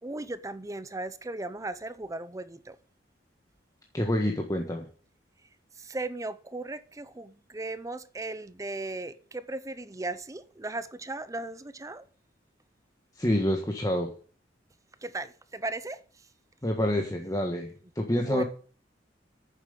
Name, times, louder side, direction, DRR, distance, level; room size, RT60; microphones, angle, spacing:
voice 1, 0.0-2.8 5.8-12.1 15.0-16.0 18.1-18.4, right 2 dB, 20° right, 0.6 m, -37 dB
voice 2, 3.9-4.9 13.1-14.1 16.6-18.4, left 1 dB, 20° left, 1.4 m, -27 dB
9.2 x 7.4 x 8.0 m
head